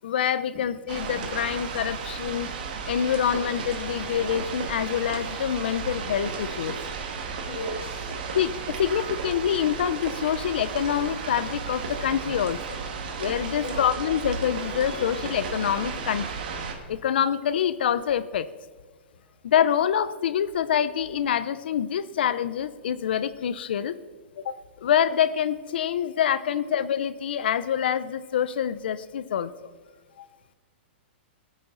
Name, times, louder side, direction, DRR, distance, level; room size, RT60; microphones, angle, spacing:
voice 1, 0.0-2.5 2.9-6.8 8.3-12.8 13.2-16.3 16.9-18.5 19.4-24.0 24.4-29.5, left 9 dB, 60° left, 15 dB, 0.6 m, -26 dB
sound 1, 0.9-16.7, right 5 dB, 45° right, 1.8 m, -34 dB
voice 2, 7.5-8.2 12.2-12.3 13.0-13.3 13.6-14.0 26.6-26.8, left 2 dB, 30° left, -3 dB, 2.1 m, -38 dB
19.0 x 9.2 x 3.9 m, 1.5 s
hypercardioid pair, 180°, 6 cm